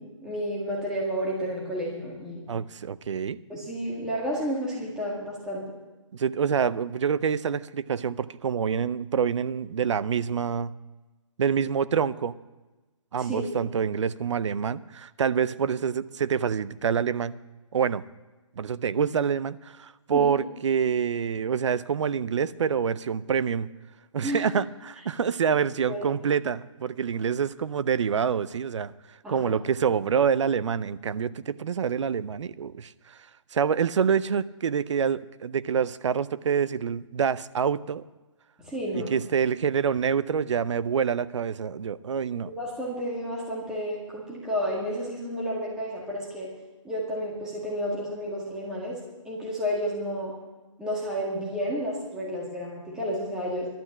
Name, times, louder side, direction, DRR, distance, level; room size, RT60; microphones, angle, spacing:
voice 1, 0.0-2.4 3.5-5.6 13.2-13.4 20.1-20.3 24.2-24.5 25.9-26.0 29.2-29.6 38.6-39.1 42.5-46.5 46.8-49.0 49.2-50.3 50.8-53.7, equal, 5° right, -5 dB, 1.9 m, -31 dB
voice 2, 2.5-3.4 6.1-10.7 11.4-12.3 13.1-17.4 17.7-18.0 18.6-23.7 24.1-28.9 29.3-33.2 33.5-38.0 38.9-42.5, right 7 dB, 65° right, 17 dB, 0.5 m, -26 dB
12.0 x 9.8 x 7.3 m, 1.2 s
hypercardioid pair, 165°, 17 cm